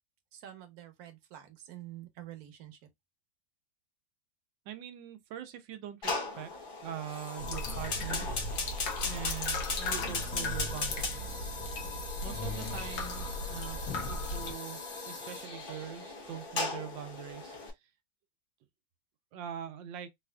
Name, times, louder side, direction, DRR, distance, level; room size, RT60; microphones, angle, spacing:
voice 1, 0.3-2.8, right 12 dB, 65° right, 1.1 m, -48 dB
voice 2, 4.7-8.3 9.0-11.6 12.2-13.8 14.1-17.9 19.3-20.1, right 9 dB, 90° right, 1.3 m, -43 dB
Fire, 6.0-17.7, left 3 dB, 45° left, 0.7 m, -38 dB
sound 1, 7.4-14.5, left 2 dB, 75° left, 1.5 m, -37 dB
4.1 x 2.4 x 2.2 m
omnidirectional pair, 2.0 m